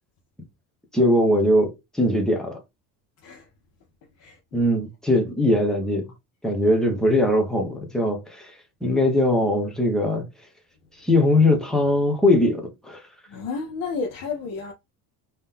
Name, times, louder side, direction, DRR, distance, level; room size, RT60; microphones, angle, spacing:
voice 1, 0.9-2.6 4.5-6.1 6.4-8.6 8.8-10.2 11.0-13.0, left 1 dB, ahead, 0.5 m, -21 dB
voice 2, 13.3-14.7, left 4 dB, 45° left, 0.8 m, -31 dB
3.6 x 2.8 x 3.3 m
cardioid pair, 175°, 46 cm